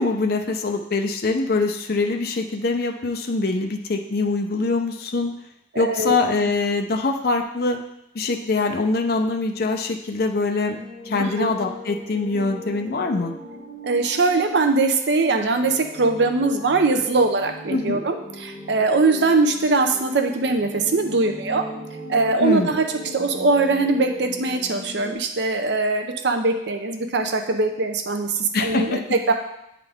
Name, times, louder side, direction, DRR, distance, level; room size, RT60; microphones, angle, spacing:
voice 1, 0.0-5.3 5.8-7.8 8.1-10.8 11.1-13.3 17.7-18.0 22.4-22.8 28.5-29.0, left 3 dB, 50° left, 3 dB, 0.5 m, -23 dB
voice 2, 5.7-6.2 11.2-11.5 13.8-21.6 22.1-29.3, right 3 dB, 60° right, 5 dB, 0.6 m, -21 dB
sound 1, 10.6-25.1, left 1 dB, 20° right, 1.4 m, -38 dB
9.0 x 3.8 x 3.5 m, 0.82 s
head